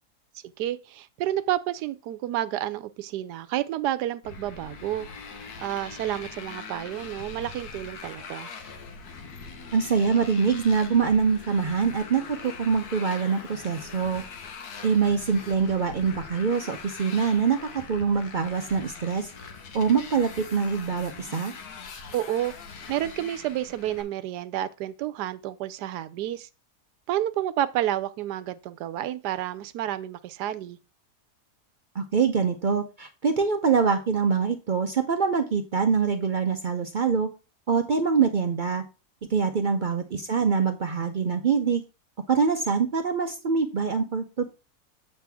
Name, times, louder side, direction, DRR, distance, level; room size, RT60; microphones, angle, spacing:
voice 1, 0.6-5.1 5.4-8.5 22.1-22.5 22.9-26.5 27.1-30.8, right 12 dB, 90° right, 1.2 m, -30 dB
Motorcycle, 4.2-24.0, left 5 dB, 70° left, 1.6 m, -42 dB
voice 2, 9.7-14.2 14.8-19.3 19.7-21.5 31.9-37.3 37.7-38.8 39.3-41.8 42.3-44.5, right 5 dB, 65° right, 0.4 m, -24 dB
7.5 x 6.4 x 3.4 m
omnidirectional pair, 1.7 m